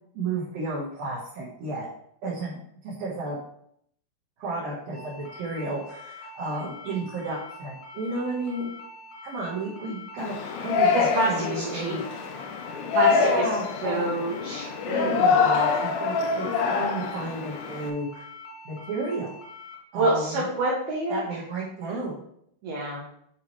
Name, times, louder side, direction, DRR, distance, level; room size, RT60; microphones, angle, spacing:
voice 1, 0.1-1.9 2.2-3.4 4.4-8.7 9.2-12.2 12.5-12.8 13.1-14.0 14.9-18.3 18.6-19.4 19.9-20.4 21.1-22.2, right 2 dB, 65° right, -7 dB, 2.5 m, -32 dB
sound 1, 4.9-19.7, left 2 dB, 55° left, 2.7 m, -44 dB
Yell, 10.2-17.9, left 5 dB, 80° left, 2.7 m, -25 dB
voice 2, 10.9-12.0 12.9-13.5 13.8-15.2 19.9-21.4 22.6-23.1, right 2 dB, 85° right, -3 dB, 2.1 m, -27 dB
8.6 x 4.7 x 3.2 m, 0.70 s
omnidirectional pair, 6.0 m